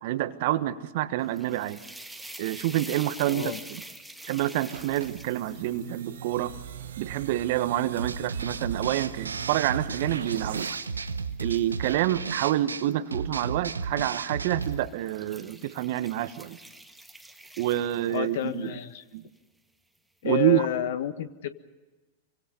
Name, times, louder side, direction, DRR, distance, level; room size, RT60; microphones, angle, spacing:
voice 1, 0.0-1.8 2.4-3.8 4.2-6.5 7.0-10.8 11.4-16.6 17.6-18.8 19.1-19.2 20.2-20.6, right 14 dB, 60° right, 12 dB, 1.5 m, -27 dB
sound 1, 1.2-8.4 9.0-12.9 13.8-14.1 14.5-18.7, right 1 dB, 5° right, 1.9 m, -47 dB
voice 2, 3.3-3.6 18.1-19.0 20.2-21.5, left 11 dB, 65° left, 11 dB, 1.5 m, -30 dB
sound 2, 4.5-10.7, right 9 dB, 75° right, 1.3 m, -41 dB
sound 3, 8.0-14.8, right 4 dB, 90° right, 0.9 m, -34 dB
27.0 x 25.0 x 5.4 m, 1.2 s
hypercardioid pair, 100°, 0 cm